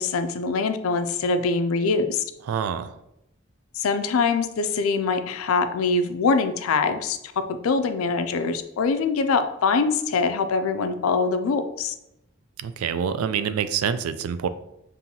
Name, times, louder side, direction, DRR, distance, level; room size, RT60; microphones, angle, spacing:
voice 1, 0.0-2.2 3.7-7.2 7.6-11.9, left 4 dB, 80° left, 9 dB, 0.4 m, -23 dB
voice 2, 2.5-2.9 12.6-14.5, right 7 dB, 85° right, 12 dB, 0.3 m, -26 dB
5.4 x 2.6 x 2.8 m, 0.86 s
head